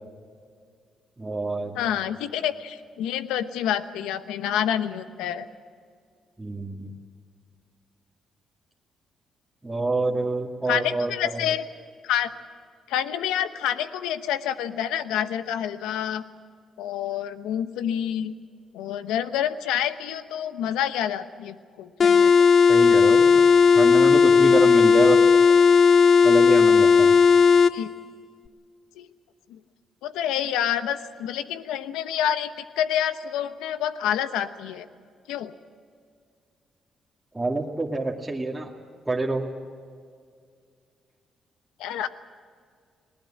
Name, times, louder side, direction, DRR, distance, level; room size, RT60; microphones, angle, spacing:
voice 1, 1.2-1.8 6.4-6.9 9.6-11.5 22.7-23.4 23.7-25.3 26.2-27.1 37.3-38.7 39.1-39.5, right 2 dB, 15° right, -2 dB, 2.4 m, -27 dB
voice 2, 1.7-5.5 10.7-11.6 12.0-12.3 12.9-16.2 16.8-18.3 18.7-22.5 27.7-27.9 29.0-29.1 29.5-29.6 30.0-34.9 35.3-35.5 41.8-42.1, left 10 dB, 90° left, 12 dB, 1.0 m, -28 dB
sound 1, 22.0-27.8, left 5 dB, 55° left, 0.7 m, -15 dB
19.5 x 19.5 x 8.9 m, 2.1 s
supercardioid pair, 60°, 0 cm